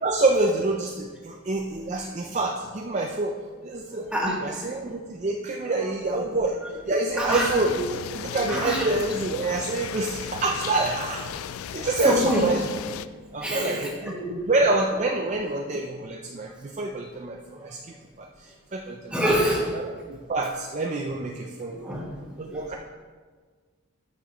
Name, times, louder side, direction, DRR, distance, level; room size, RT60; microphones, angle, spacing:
voice 1, 0.0-3.4 3.6-4.1 4.4-6.6 6.9-11.3 11.7-12.7 13.3-14.2 14.5-19.2 19.7-22.0 22.4-22.8, right 2 dB, 30° right, 2 dB, 0.4 m, -27 dB
voice 2, 3.9-4.9 7.2-7.5 8.5-8.9 12.0-12.5 13.4-14.4 17.6-17.7 19.1-19.7 21.7-22.4, equal, 5° right, -4 dB, 1.6 m, -27 dB
sound 1, 7.3-13.1, left 8 dB, 75° left, 0.3 m, -35 dB
13.0 x 6.1 x 3.0 m, 1.5 s
head